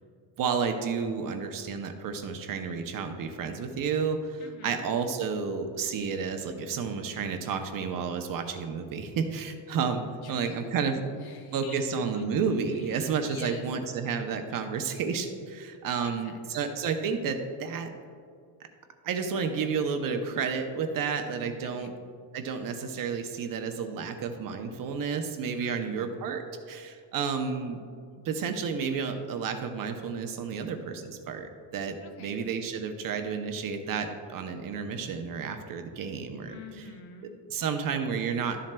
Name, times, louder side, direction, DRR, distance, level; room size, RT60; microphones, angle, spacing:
voice 1, 0.4-10.0 10.3-11.0 11.5-17.9 19.0-21.9 22.3-27.8 28.2-36.6 37.5-38.6, right 6 dB, 45° right, 6 dB, 0.6 m, -31 dB
voice 2, 4.4-4.9 10.2-11.9 12.1-12.3 12.7-13.7 16.0-16.4 21.6-21.9 25.6-26.1 32.0-32.3 36.5-37.4, left 5 dB, 55° left, 5 dB, 0.9 m, -47 dB
12.5 x 7.4 x 2.2 m, 2.2 s
cardioid pair, 170°, 47 cm